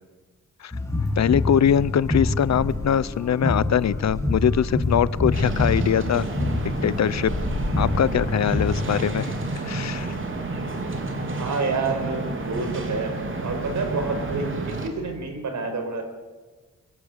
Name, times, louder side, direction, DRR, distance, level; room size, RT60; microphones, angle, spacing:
sound 1, 0.7-9.1, left 2 dB, 10° left, 6.5 m, -26 dB
voice 1, 1.2-6.3 6.8-7.3 7.8-10.1, left 9 dB, 60° left, 18 dB, 0.7 m, -22 dB
sound 2, 5.3-14.9, right 2 dB, 40° right, 3.8 m, -30 dB
voice 2, 11.3-16.0, right 3 dB, 65° right, 6 dB, 5.4 m, -29 dB
25.5 x 24.0 x 8.1 m, 1.3 s
wide cardioid pair, 155°, 31 cm